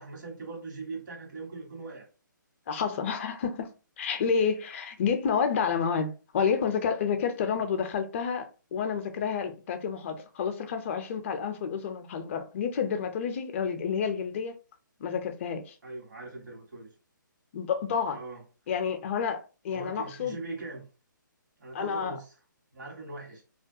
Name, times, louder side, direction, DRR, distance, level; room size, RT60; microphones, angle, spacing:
voice 1, 0.0-2.1 15.8-16.9 18.1-18.4 19.7-20.9 21.6-22.3 22.7-23.4, right 3 dB, 65° right, 1.1 m, -41 dB
voice 2, 2.7-3.7 4.0-14.6 15.0-15.7 17.5-18.2 18.7-20.4 21.7-22.2, left 6 dB, 40° left, 0.4 m, -29 dB
2.3 x 2.2 x 2.6 m
hypercardioid pair, 150°, 11 cm